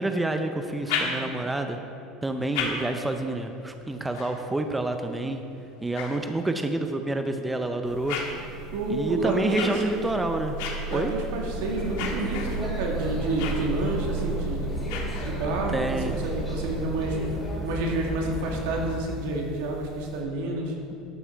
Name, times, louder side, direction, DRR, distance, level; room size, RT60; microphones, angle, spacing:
voice 1, 0.0-1.8 2.2-5.4 5.8-8.2 8.9-10.6 10.9-11.1 15.7-16.2, right 2 dB, 10° right, 6 dB, 0.5 m, -28 dB
sound 1, 0.6-1.6 2.2-6.8 7.4-15.7, left 5 dB, 80° left, 1.6 m, -37 dB
sound 2, 7.9-20.2, right 3 dB, 50° right, 1.0 m, -36 dB
voice 2, 8.7-10.0 10.9-14.9 15.2-17.2 17.6-20.7, right 2 dB, 85° right, 0 dB, 2.1 m, -29 dB
sound 3, 11.5-19.0, equal, 5° left, 2.2 m, -35 dB
12.5 x 8.6 x 4.6 m, 2.7 s
cardioid pair, 150°, 0 cm